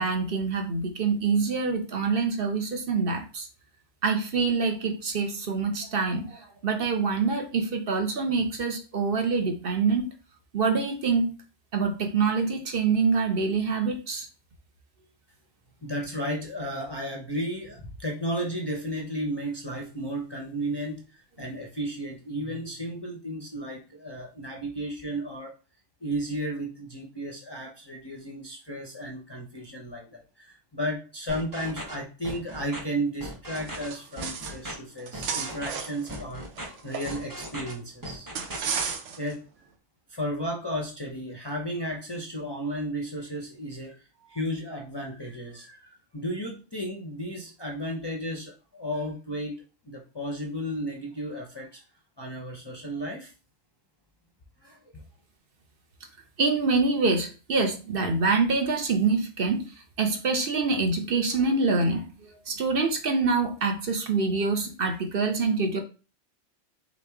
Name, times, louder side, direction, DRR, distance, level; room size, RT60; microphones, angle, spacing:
voice 1, 0.0-3.5 4.0-10.1 10.5-11.3 11.7-14.3 56.4-59.6 60.0-62.0 62.5-65.8, right 4 dB, 55° right, 4 dB, 0.9 m, -25 dB
voice 2, 15.8-21.0 21.4-25.5 26.0-38.3 39.2-39.4 40.1-44.0 44.2-49.6 49.9-51.8 52.2-53.3 54.6-55.0, equal, 30° left, -1 dB, 0.5 m, -34 dB
sound 1, 31.3-32.0 32.2-32.8 33.2-33.9 34.2-34.7 35.1-35.8 36.1-36.7 37.1-37.7 38.0-38.9, equal, 20° right, 0.8 m, -38 dB
sound 2, 33.5-34.7 35.0-37.7 38.3-39.3, right 7 dB, 90° right, 1.0 m, -34 dB
3.8 x 3.1 x 3.4 m, 0.34 s
omnidirectional pair, 1.2 m